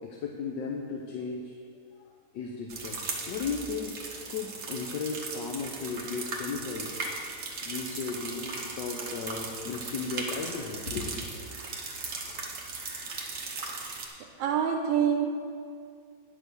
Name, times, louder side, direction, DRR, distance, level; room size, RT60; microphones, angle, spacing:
voice 1, 0.0-1.5 2.3-3.0 3.3-4.0 4.3-6.9 7.6-11.3, left 5 dB, 75° left, 1 dB, 1.4 m, -35 dB
sound 1, 2.7-14.1, right 3 dB, 50° right, 1.4 m, -38 dB
voice 2, 14.2-15.3, right 8 dB, 90° right, 3 dB, 1.3 m, -26 dB
9.9 x 6.3 x 6.1 m, 2.3 s
omnidirectional pair, 2.0 m